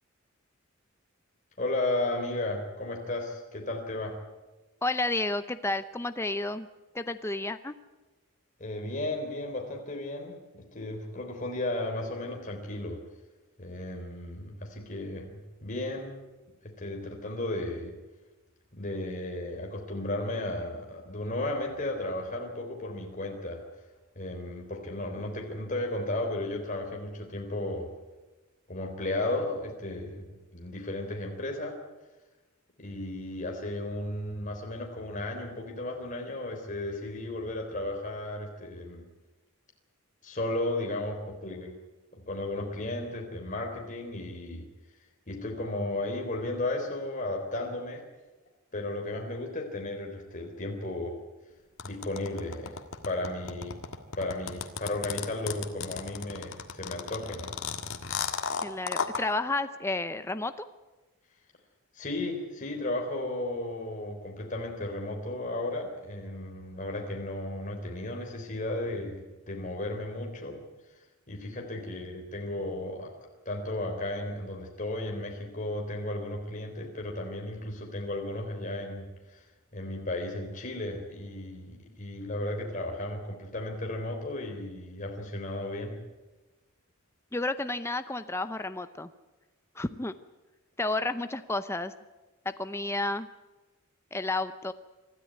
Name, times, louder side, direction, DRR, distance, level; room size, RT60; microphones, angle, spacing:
voice 1, 1.6-4.2 8.6-13.0 13.6-16.2 16.6-17.9 18.7-23.6 24.2-27.9 28.7-30.2 30.5-31.8 32.8-39.1 40.2-41.7 42.1-44.7 45.3-48.0 48.7-51.2 51.8-52.7 53.0-53.8 54.2-57.5 61.9-70.6 71.3-73.1 73.5-79.4 79.7-86.0, left 1 dB, 40° left, 1 dB, 3.6 m, -34 dB
voice 2, 4.8-6.7 6.9-7.7 58.6-60.7 87.3-89.1 89.8-90.1 90.8-91.9 92.4-93.3 94.1-94.7, left 2 dB, 10° left, 10 dB, 0.7 m, -31 dB
sound 1, 51.8-59.2, left 6 dB, 75° left, 1.8 m, -33 dB
25.0 x 13.5 x 9.3 m, 1.2 s
head